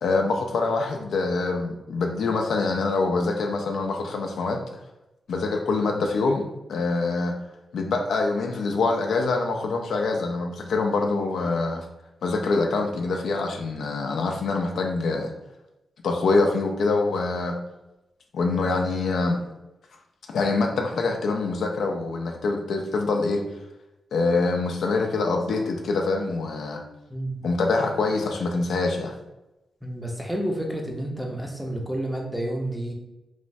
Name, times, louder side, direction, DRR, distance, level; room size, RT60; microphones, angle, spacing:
voice 1, 0.0-4.6 5.3-6.4 6.7-7.3 7.7-11.8 12.2-15.3 16.0-17.6 18.3-19.4 20.3-23.4 24.1-26.8 27.4-29.1, left 3 dB, 75° left, 2 dB, 0.3 m, -25 dB
voice 2, 29.8-32.9, right 1 dB, ahead, -1 dB, 0.6 m, -30 dB
3.1 x 2.0 x 2.6 m, 0.94 s
cardioid pair, 80°, 0 cm